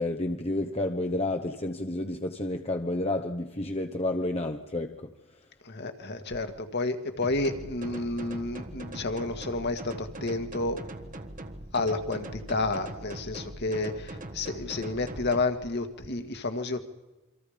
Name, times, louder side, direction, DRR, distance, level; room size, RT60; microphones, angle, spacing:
voice 1, 0.0-5.1, left 2 dB, 30° left, 1.0 m, -30 dB
voice 2, 5.7-10.8 11.7-16.9, left 2 dB, 50° left, 1.9 m, -30 dB
sound 1, 7.2-15.4, right 1 dB, 40° right, 1.4 m, -41 dB
28.0 x 25.0 x 5.2 m
head